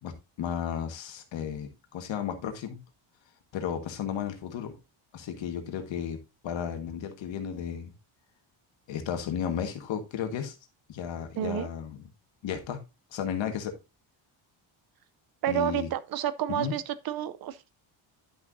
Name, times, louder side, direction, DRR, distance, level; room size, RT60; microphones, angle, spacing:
voice 1, 0.0-2.8 3.5-4.8 5.1-6.2 6.4-7.9 8.9-10.6 10.9-12.0 12.4-12.8 13.1-13.7 15.5-15.9 16.5-16.7, left 8 dB, 65° left, 1.6 m, -33 dB
voice 2, 11.4-11.7 15.4-17.7, right 11 dB, 45° right, 0.6 m, -30 dB
10.5 x 6.2 x 2.6 m
cardioid pair, 160°, 49 cm